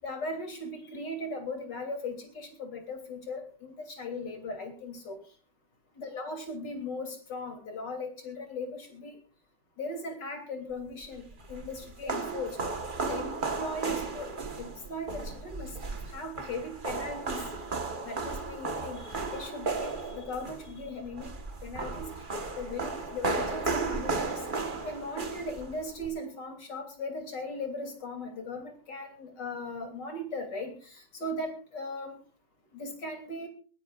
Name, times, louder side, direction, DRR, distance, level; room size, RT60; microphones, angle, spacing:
voice 1, 0.0-5.2 6.0-9.2 9.8-11.2 11.5-12.6 13.0-14.3 14.6-15.8 16.1-17.4 18.0-21.3 21.6-22.1 22.6-24.4 24.9-32.2 32.7-33.5, left 2 dB, 50° left, 4 dB, 3.7 m, -38 dB
sound 1, 11.0-26.1, right 3 dB, 30° right, 1.2 m, -35 dB
21.5 x 16.5 x 2.5 m, 0.39 s
omnidirectional pair, 2.4 m